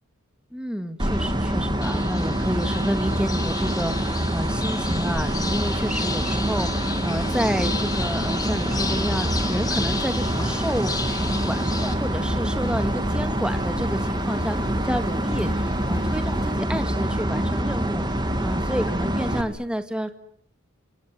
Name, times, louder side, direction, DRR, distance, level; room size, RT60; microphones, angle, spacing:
voice 1, 0.5-10.9 11.2-20.1, equal, 5° right, 8 dB, 2.0 m, -30 dB
sound 1, 1.0-19.4, right 1 dB, 20° right, 2.5 m, -25 dB
sound 2, 1.8-11.9, left 4 dB, 15° left, 2.6 m, -33 dB
sound 3, 9.7-16.6, left 1 dB, 50° left, 4.9 m, -42 dB
28.0 x 27.0 x 7.7 m, 0.65 s
head